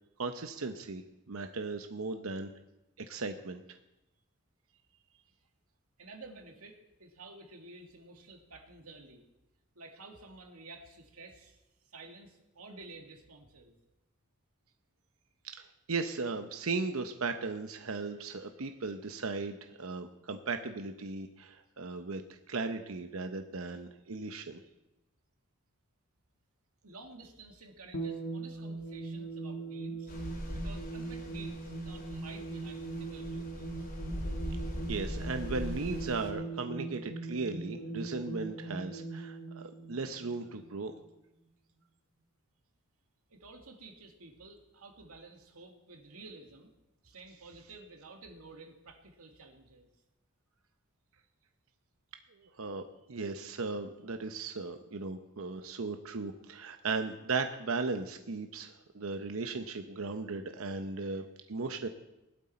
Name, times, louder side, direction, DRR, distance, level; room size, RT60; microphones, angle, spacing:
voice 1, 0.2-1.0 1.3-2.5 3.1-3.6 15.6-24.6 34.9-40.9 52.4-61.9, right 3 dB, 75° right, 7 dB, 0.8 m, -37 dB
voice 2, 6.0-9.2 9.8-11.6 11.9-13.8 23.7-23.8 26.8-30.1 30.5-33.9 43.3-46.7 47.0-49.9, right 3 dB, 90° right, 3 dB, 2.2 m, -52 dB
sound 1, 27.9-40.8, right 3 dB, 65° left, 1.5 m, -40 dB
sound 2, 30.1-36.3, equal, 40° left, 3.0 m, -41 dB
19.5 x 12.0 x 4.3 m, 0.95 s
head